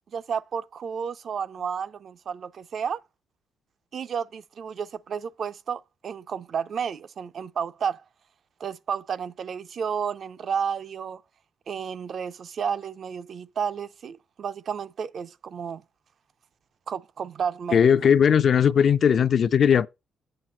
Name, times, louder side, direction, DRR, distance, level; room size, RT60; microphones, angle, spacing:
voice 1, 0.1-3.0 3.9-8.0 8.6-11.2 11.7-15.8 16.9-17.8, right 7 dB, 55° right, 0.4 m, -31 dB
voice 2, 17.7-19.9, left 7 dB, 55° left, 0.4 m, -18 dB
7.8 x 5.8 x 4.3 m
cardioid pair, 90°, 0 cm